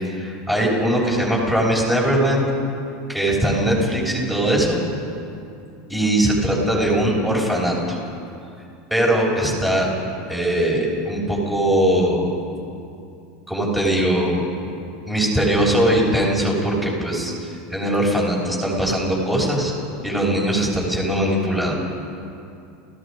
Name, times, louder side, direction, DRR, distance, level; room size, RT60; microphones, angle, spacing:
voice 1, 0.1-2.4 3.1-4.8 5.9-8.0 8.9-9.9 10.3-12.3 13.5-14.5 15.1-17.3 17.7-19.7 20.0-21.7, right 1 dB, 5° right, -3 dB, 6.8 m, -20 dB
30.0 x 16.5 x 5.3 m, 2.5 s
hypercardioid pair, 90°, 0 cm